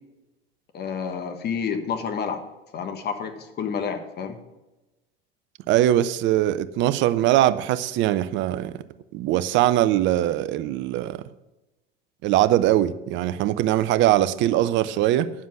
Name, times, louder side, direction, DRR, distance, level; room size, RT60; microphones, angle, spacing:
voice 1, 0.7-2.4 2.7-4.4, left 6 dB, 35° left, 7 dB, 1.4 m, -29 dB
voice 2, 5.7-8.8 9.1-11.2 12.2-15.3, right 13 dB, 40° right, 14 dB, 0.6 m, -21 dB
9.7 x 7.3 x 6.0 m, 1.0 s
figure-of-eight pair, 80°, 30 cm